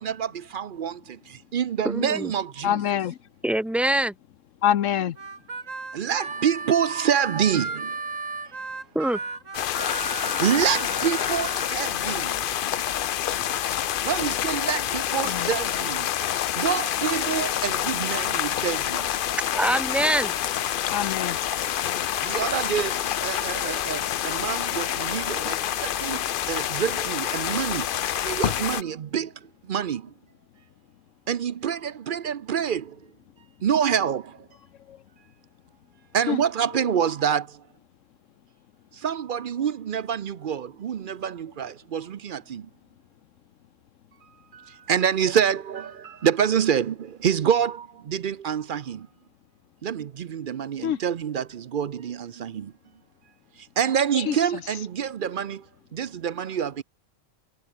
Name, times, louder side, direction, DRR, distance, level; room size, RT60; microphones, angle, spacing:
voice 1, 0.0-2.8 5.9-8.0 10.4-12.4 14.0-16.1 16.5-19.1 22.2-30.1 31.3-33.0 33.6-34.5 36.1-37.6 38.9-42.7 44.5-49.1 49.8-52.7 53.6-55.7 55.9-56.8, right 8 dB, 55° right, 0.7 m, -27 dB
voice 2, 1.8-2.3 3.4-4.1 8.9-9.2 19.5-20.3, right 1 dB, ahead, 0.6 m, -24 dB
voice 3, 2.6-3.2 4.6-5.2 15.2-15.5 20.9-21.4 34.9-35.0 36.3-36.4 36.8-36.9 50.8-51.0 54.3-54.4, left 10 dB, 80° left, 1.1 m, -25 dB
Harmonica, 5.2-11.7, right 4 dB, 85° right, 3.1 m, -35 dB
sound 1, 9.5-28.8, left 10 dB, 55° left, 0.6 m, -27 dB
omnidirectional pair, 1.3 m